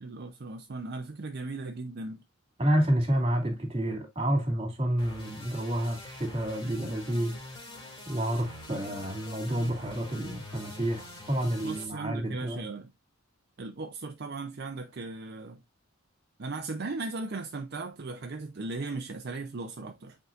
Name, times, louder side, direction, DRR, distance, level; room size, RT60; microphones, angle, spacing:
voice 1, 0.0-2.2 11.6-12.9 13.6-15.6 16.4-20.2, right 3 dB, 50° right, 0.6 m, -37 dB
voice 2, 2.6-7.3 8.1-12.6, right 1 dB, 25° right, 2.4 m, -29 dB
sound 1, 5.0-11.8, left 1 dB, 25° left, 2.5 m, -45 dB
8.1 x 4.7 x 2.5 m
head